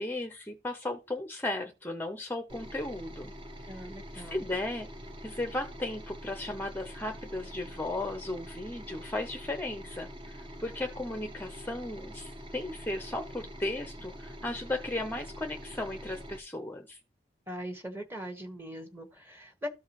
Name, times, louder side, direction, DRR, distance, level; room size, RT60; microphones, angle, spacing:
voice 1, 0.0-3.3 3.6-3.8 4.1-4.9 5.2-17.0, left 2 dB, 10° left, 0.6 m, -36 dB
sound 1, 2.5-16.4, equal, 30° right, 0.8 m, -45 dB
voice 2, 3.7-4.4 17.5-19.7, equal, 15° right, 1.3 m, -41 dB
13.5 x 4.6 x 3.0 m
head